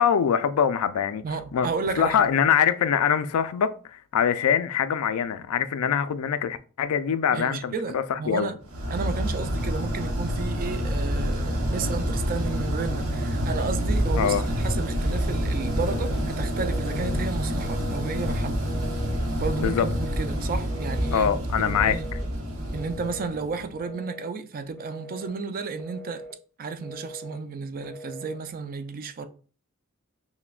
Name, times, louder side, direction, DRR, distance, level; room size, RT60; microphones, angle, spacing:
voice 1, 0.0-1.2 1.5-1.7 1.9-8.5 14.1-14.4 19.6-19.9 21.1-22.0, left 8 dB, 80° left, 0.4 m, -23 dB
voice 2, 1.2-2.3 7.3-8.6 8.9-18.7 19.4-21.3 21.6-22.1 22.7-26.3 26.6-29.3, right 4 dB, 40° right, 0.4 m, -32 dB
sound 1, 8.7-23.7, equal, 75° right, 1.0 m, -27 dB
Telephone, 15.6-16.2 16.6-17.2 17.6-18.2 18.7-19.2 19.7-20.2 20.7-21.3 21.7-22.3 22.7-23.3 23.8-24.3 24.8-25.3 25.8-26.4 26.8-27.4 27.8-28.4, equal, 5° left, 0.6 m, -42 dB
5.8 x 2.1 x 2.3 m
head